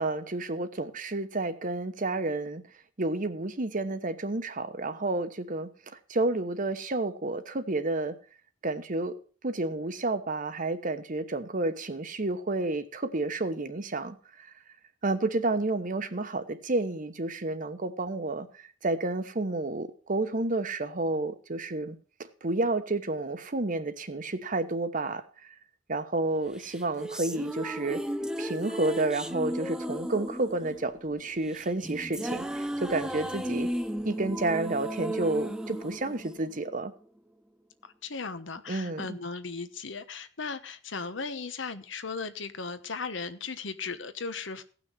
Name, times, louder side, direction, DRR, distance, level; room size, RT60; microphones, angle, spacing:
voice 1, 0.0-2.6 3.0-5.7 6.1-8.1 8.6-9.1 9.4-14.1 15.0-18.5 18.8-22.0 22.4-25.2 25.9-28.0 28.4-32.4 32.8-33.7 34.0-36.9 38.7-39.1, right 2 dB, 45° right, 1.1 m, -30 dB
sound 1, 26.6-37.0, equal, 5° right, 0.6 m, -35 dB
voice 2, 37.8-44.6, left 4 dB, 70° left, 1.1 m, -37 dB
16.5 x 6.1 x 6.2 m
head